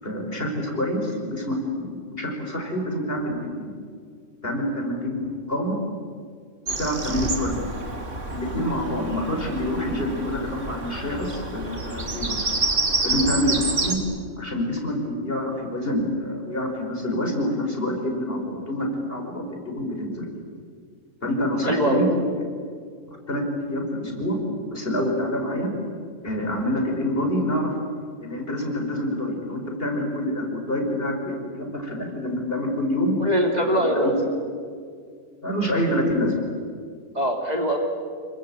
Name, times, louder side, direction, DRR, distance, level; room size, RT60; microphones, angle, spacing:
voice 1, 0.0-3.7 4.4-5.8 6.7-7.7 8.3-12.5 13.0-14.0 14.4-20.3 21.2-22.1 23.3-24.4 24.7-25.7 26.2-27.8 28.2-33.2 33.8-34.1 35.4-36.3, left 1 dB, 45° left, 2 dB, 5.3 m, -27 dB
Bird vocalization bird call bird song, 6.7-14.0, right 3 dB, 65° right, 2.9 m, -28 dB
voice 2, 21.6-22.1 33.2-34.1 37.1-37.8, equal, 30° right, 2 dB, 3.0 m, -22 dB
27.5 x 24.0 x 8.9 m, 2.1 s
omnidirectional pair, 1.4 m